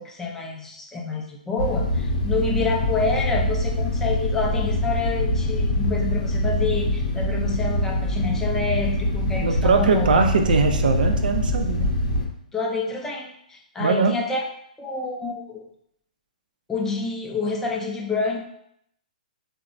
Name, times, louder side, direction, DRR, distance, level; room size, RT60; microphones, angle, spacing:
voice 1, 0.0-10.1 12.5-14.4 14.8-15.7 16.7-18.4, left 3 dB, 10° left, 0 dB, 0.3 m, -28 dB
sound 1, 1.6-12.3, left 1 dB, 75° left, 0.6 m, -24 dB
voice 2, 9.4-11.9 13.8-14.1, right 4 dB, 80° right, 5 dB, 0.3 m, -21 dB
2.9 x 2.0 x 2.5 m, 0.72 s
hypercardioid pair, 135°, 5 cm